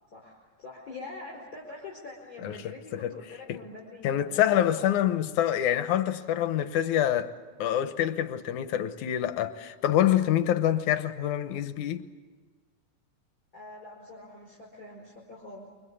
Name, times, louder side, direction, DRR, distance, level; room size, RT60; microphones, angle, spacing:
voice 1, 0.1-5.0 13.5-15.7, left 3 dB, 30° left, 5.3 m, -44 dB
voice 2, 2.4-3.1 3.5-3.6 4.0-7.3 7.6-12.1, left 11 dB, 85° left, 2.5 m, -26 dB
29.0 x 24.0 x 8.4 m
omnidirectional pair, 3.4 m